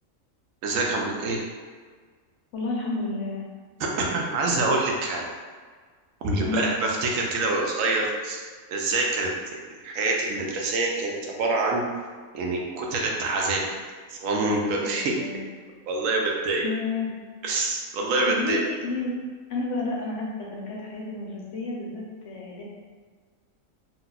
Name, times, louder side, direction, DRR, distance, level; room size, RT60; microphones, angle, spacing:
voice 1, 0.6-1.4 3.8-5.3 6.2-8.4 8.7-11.8 12.3-13.6 14.1-15.2 15.9-16.6 17.4-18.6, right 2 dB, 75° right, -1 dB, 0.9 m, -26 dB
voice 2, 2.5-3.4 6.4-6.7 14.8-15.5 16.2-17.1 18.2-19.1 19.5-22.6, left 3 dB, 65° left, -3 dB, 0.9 m, -31 dB
2.7 x 2.2 x 3.8 m, 1.5 s
omnidirectional pair, 1.4 m